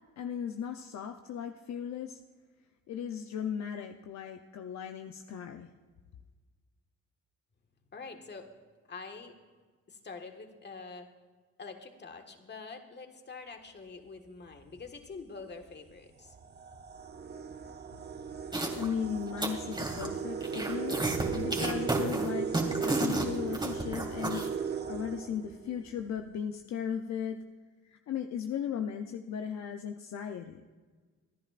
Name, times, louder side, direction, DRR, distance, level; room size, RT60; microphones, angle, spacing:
voice 1, 0.2-2.2 2.9-5.7 18.7-27.4 27.8-30.7, left 8 dB, 65° left, 6 dB, 0.7 m, -37 dB
voice 2, 7.9-8.5 8.9-9.3 9.9-11.1 11.6-16.3, left 4 dB, 35° left, 4 dB, 1.7 m, -45 dB
sound 1, 14.6-14.9 15.7-15.8 16.2-26.0, right 6 dB, 35° right, 0.9 m, -37 dB
sound 2, 18.5-18.9 19.2-20.1 20.4-24.5, right 2 dB, 15° right, 2.3 m, -32 dB
25.5 x 10.5 x 2.5 m, 1.4 s
cardioid pair, 90°, 30 cm